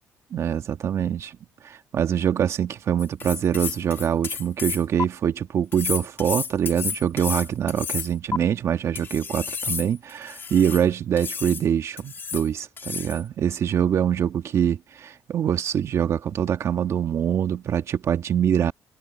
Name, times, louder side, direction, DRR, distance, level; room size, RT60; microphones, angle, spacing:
voice 1, 0.3-1.4 1.6-18.7, right 9 dB, 55° right, 1.7 m, -24 dB
sound 1, 3.0-5.0 5.7-8.4 8.9-10.8 11.2-11.6 12.0-12.5 12.8-13.2, left 6 dB, 40° left, 2.4 m, -31 dB
cardioid pair, 95°, 6 cm